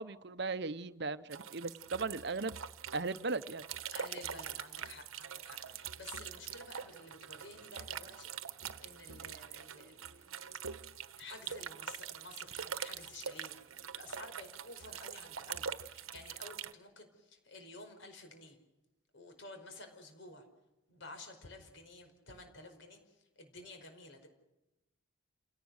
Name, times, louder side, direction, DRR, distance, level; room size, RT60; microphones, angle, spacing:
voice 1, 0.0-2.6 2.9-3.6, right 3 dB, 55° right, 0.8 m, -37 dB
sound 1, 1.3-16.7, right 7 dB, 90° right, 1.1 m, -44 dB
voice 2, 3.9-8.3 8.8-10.3 11.2-18.6 19.1-20.5 20.9-24.3, left 2 dB, 65° left, 4.9 m, -52 dB
29.0 x 17.5 x 6.5 m
head